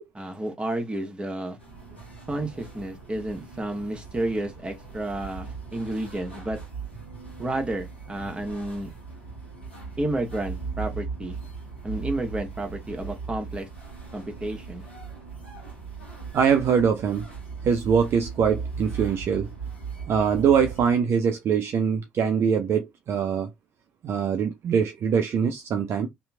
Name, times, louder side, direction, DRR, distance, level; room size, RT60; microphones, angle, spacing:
voice 1, 0.1-1.6 2.3-6.6 7.4-8.9 10.0-11.4 11.8-13.7 14.1-14.8, right 1 dB, 15° right, 1.1 m, -31 dB
sound 1, 1.6-21.0, right 5 dB, 85° left, 0.9 m, -38 dB
voice 2, 16.3-17.3 17.6-19.5 20.1-23.5 24.0-26.1, right 7 dB, 45° right, 0.4 m, -23 dB
2.8 x 2.6 x 2.2 m
figure-of-eight pair, 50°, 6 cm